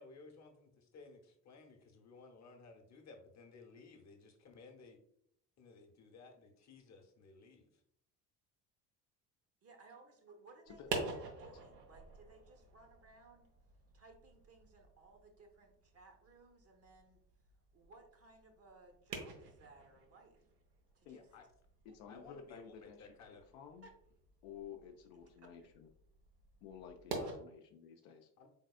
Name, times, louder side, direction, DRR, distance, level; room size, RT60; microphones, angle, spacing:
voice 1, 0.0-5.0 5.6-7.7 21.1-21.4 22.1-23.4 27.2-27.4 28.4-28.5, left 4 dB, 35° left, 3 dB, 0.9 m, -57 dB
voice 2, 9.6-13.5 13.9-17.2 17.7-20.4 20.9-21.2 23.8-23.9 25.4-25.7, right 3 dB, 30° right, 4 dB, 0.8 m, -61 dB
sound 1, 10.6-27.4, right 4 dB, 80° right, 0.8 m, -49 dB
voice 3, 10.7-11.2 21.0-21.2 21.8-23.9 24.4-25.9 26.6-28.3, left 7 dB, 55° left, 4 dB, 0.6 m, -53 dB
4.0 x 3.5 x 2.3 m, 0.73 s
figure-of-eight pair, 55°, 47 cm